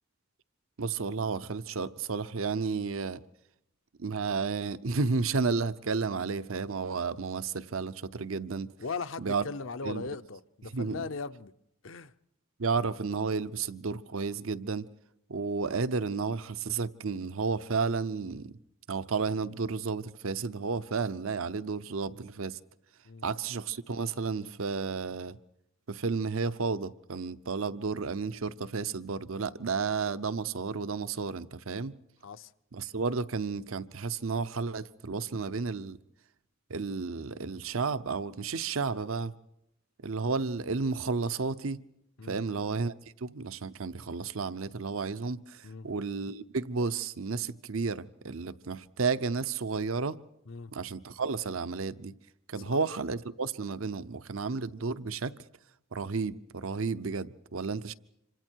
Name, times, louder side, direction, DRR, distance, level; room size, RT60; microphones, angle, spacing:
voice 1, 0.8-3.2 4.0-8.7 9.2-9.4 9.8-10.1 10.7-11.0 12.6-14.9 15.3-18.6 18.9-22.6 23.2-25.4 25.9-32.0 32.7-36.0 36.7-39.3 40.0-41.8 42.2-50.2 50.7-52.1 52.5-55.3 55.9-57.9, right 4 dB, 80° right, 0.8 m, -32 dB
voice 2, 8.8-11.5 11.8-12.1 23.0-23.2 32.2-32.5 42.2-42.4 45.6-45.9 50.5-50.7 52.6-52.8, left 4 dB, 70° left, 0.8 m, -39 dB
26.5 x 25.5 x 4.6 m
head